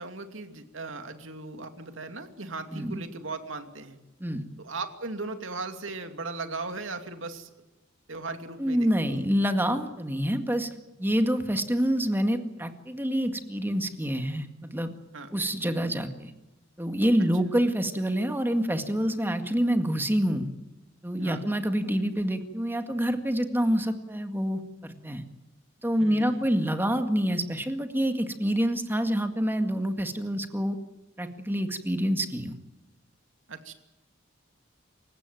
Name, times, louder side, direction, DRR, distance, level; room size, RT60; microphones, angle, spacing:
voice 1, 0.0-4.0 4.6-7.5 8.1-9.2 15.1-15.3 21.2-21.4 25.9-26.5 33.5-33.7, right 3 dB, 70° right, 7 dB, 2.6 m, -38 dB
voice 2, 2.7-3.0 4.2-4.4 8.6-10.7 11.0-14.9 15.3-16.3 16.8-20.5 21.0-25.2 25.8-30.8 31.2-32.6, equal, 10° right, 7 dB, 1.9 m, -27 dB
28.0 x 16.5 x 9.2 m, 1.0 s
head